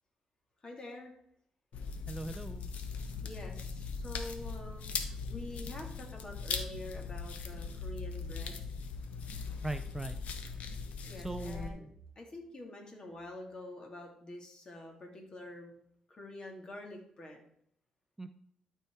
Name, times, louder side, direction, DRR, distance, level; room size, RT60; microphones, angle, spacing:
voice 1, 0.6-1.2 3.2-8.7 11.1-11.9 12.2-15.8 16.1-17.4, left 1 dB, 35° left, 1 dB, 2.5 m, -47 dB
sound 1, 1.7-11.7, left 5 dB, 75° left, 1.1 m, -40 dB
voice 2, 2.1-2.7 9.6-10.2 11.2-11.9 18.2-18.3, right 2 dB, 15° right, 9 dB, 0.5 m, -39 dB
12.5 x 4.7 x 4.5 m, 0.70 s
cardioid pair, 95°, 2 cm